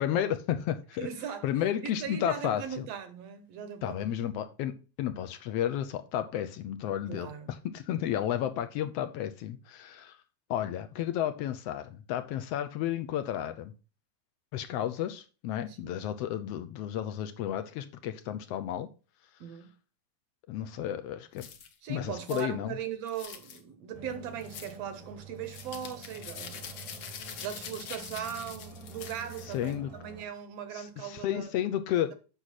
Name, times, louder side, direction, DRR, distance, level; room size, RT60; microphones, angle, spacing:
voice 1, 0.0-1.1 1.4-2.9 3.8-7.3 7.6-10.2 10.5-13.7 14.5-18.9 20.5-21.4 21.9-22.8 29.5-29.9 30.7-32.1, left 11 dB, 75° left, 1.5 m, -32 dB
voice 2, 1.0-4.1 7.1-7.5 15.7-16.1 19.4-19.7 21.8-26.8 27.4-31.5, right 8 dB, 70° right, 1.7 m, -39 dB
sound 1, 21.4-21.7 22.3-22.5 23.1-23.6 24.4-24.8 25.5-29.7, left 7 dB, 60° left, 1.6 m, -44 dB
sound 2, 23.9-30.2, right 4 dB, 25° right, 0.7 m, -48 dB
8.2 x 6.1 x 4.1 m
omnidirectional pair, 3.4 m